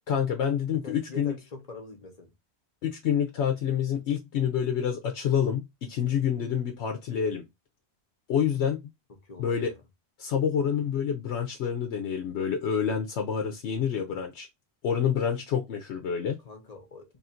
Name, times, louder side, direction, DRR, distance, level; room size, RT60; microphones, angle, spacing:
voice 1, 0.1-1.3 2.8-7.5 8.3-8.8 9.4-9.7 10.2-14.5 14.8-16.4, left 8 dB, 80° left, 0.9 m, -27 dB
voice 2, 0.7-2.3 9.2-9.8 16.4-17.2, left 3 dB, 40° left, 1.0 m, -44 dB
3.1 x 2.5 x 4.2 m
omnidirectional pair, 1.1 m